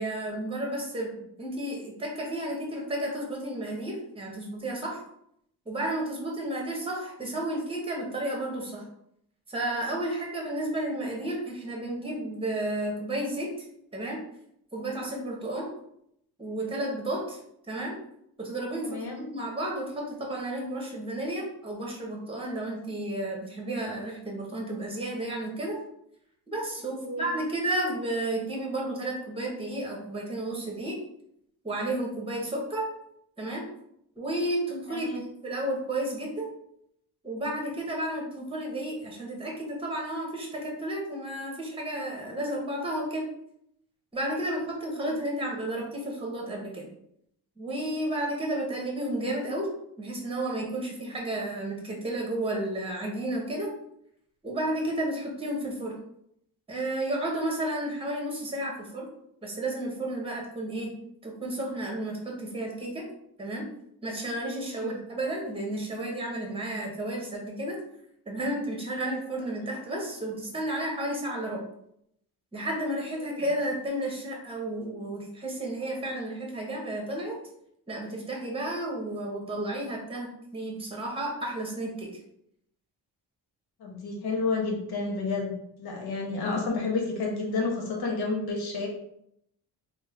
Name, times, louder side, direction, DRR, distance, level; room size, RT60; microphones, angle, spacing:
voice 1, 0.0-5.0 5.7-8.8 9.5-13.5 13.9-14.2 14.7-15.7 16.4-18.0 18.4-25.8 26.5-31.0 31.6-32.9 33.4-33.6 34.2-35.1 35.4-36.5 37.2-43.3 44.1-46.9 47.6-49.7 50.0-53.7 54.4-56.0 56.7-59.1 59.4-60.9 61.2-63.0 63.4-63.7 64.0-67.8 68.3-71.6 72.5-77.4 77.9-82.1, right 1 dB, 15° right, -1 dB, 1.0 m, -32 dB
voice 2, 18.8-19.1 27.0-27.3 34.9-35.2 45.1-45.2 64.6-65.0 73.3-73.4 83.8-88.9, left 3 dB, 65° left, 0 dB, 1.1 m, -30 dB
3.4 x 2.2 x 3.5 m, 0.74 s
cardioid pair, 115°, 39 cm